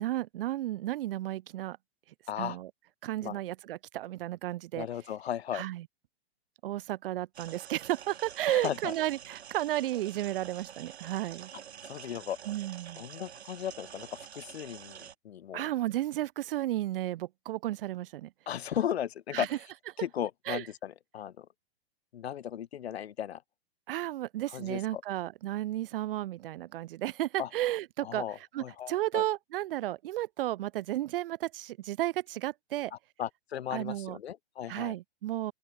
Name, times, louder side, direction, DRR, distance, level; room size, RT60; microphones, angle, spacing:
voice 1, 0.0-1.8 2.4-2.7 3.0-4.9 5.5-5.9 6.6-11.5 12.4-13.0 15.5-18.3 19.3-19.5 20.5-20.7 23.9-28.2 28.5-32.9 33.7-34.2 34.7-35.5, right 14 dB, 60° right, 1.4 m, -33 dB
voice 2, 4.8-5.6 8.5-8.9 11.8-12.4 13.0-15.7 18.5-19.5 20.0-21.5 22.1-23.4 24.5-25.0 27.4-27.5 28.0-29.2 33.2-35.0, left 10 dB, 80° left, 2.2 m, -36 dB
sound 1, 7.3-15.1, right 9 dB, 80° right, 4.0 m, -48 dB
open air
hypercardioid pair, 140°, 32 cm